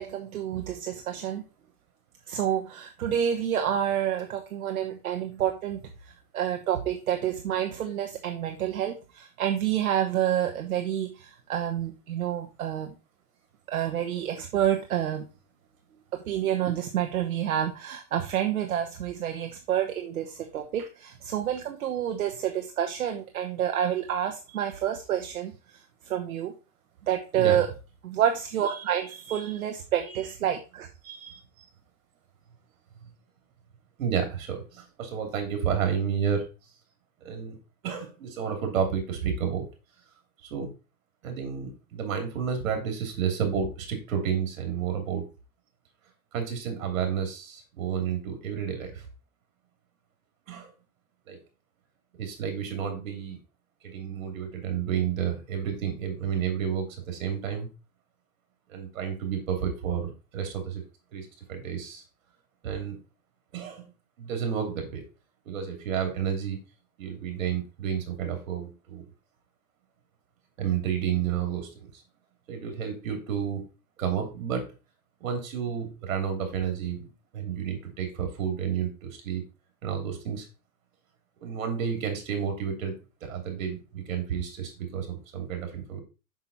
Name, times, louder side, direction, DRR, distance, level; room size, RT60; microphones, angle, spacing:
voice 1, 0.0-1.4 2.3-5.8 6.3-12.9 13.7-15.2 16.1-25.5 26.1-26.5 27.1-27.7 28.0-30.9, right 10 dB, 85° right, 5 dB, 1.1 m, -28 dB
voice 2, 29.1-29.6 30.0-30.2 31.0-31.4 34.0-36.4 37.2-37.6 37.8-39.6 40.5-40.7 41.2-45.3 46.3-49.1 50.5-50.7 51.3-51.4 52.2-53.4 53.8-57.7 58.7-60.8 61.1-62.0 62.6-63.0 63.5-63.9 64.2-65.0 65.5-66.6 67.0-69.0 70.6-72.0 72.5-73.6 74.0-74.6 75.2-77.1 77.3-79.4 79.8-80.5 81.4-82.9 83.2-86.0, right 8 dB, 70° right, 5 dB, 3.0 m, -31 dB
6.1 x 5.7 x 4.0 m, 0.30 s
hypercardioid pair, 135°, 42 cm